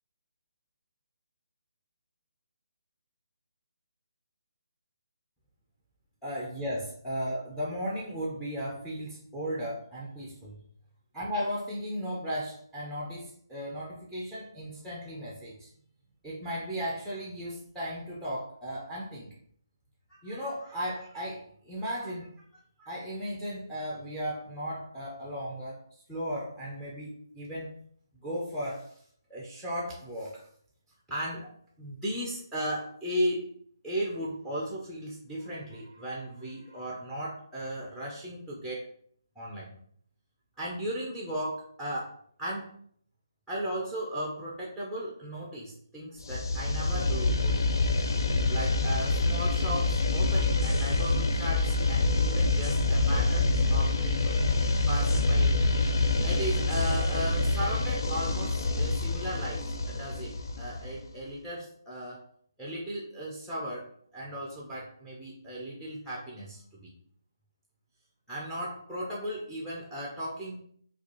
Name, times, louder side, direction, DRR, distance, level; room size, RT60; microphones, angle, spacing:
voice 1, 6.2-10.6 11.1-15.7 16.2-19.3 20.2-22.3 22.8-25.8 26.1-27.8 28.1-29.0 29.3-30.4 31.1-31.5 31.8-33.5 33.8-38.9 39.4-39.7 40.6-42.1 42.4-42.7 43.5-47.6 48.5-54.4 54.9-55.5 56.2-62.2 62.6-63.9 64.1-66.9 68.3-70.6, equal, ahead, -4 dB, 0.5 m, -36 dB
sound 1, 46.2-61.0, left 2 dB, 65° left, 0.5 m, -26 dB
4.0 x 2.3 x 2.9 m, 0.62 s
hypercardioid pair, 160°, 2 cm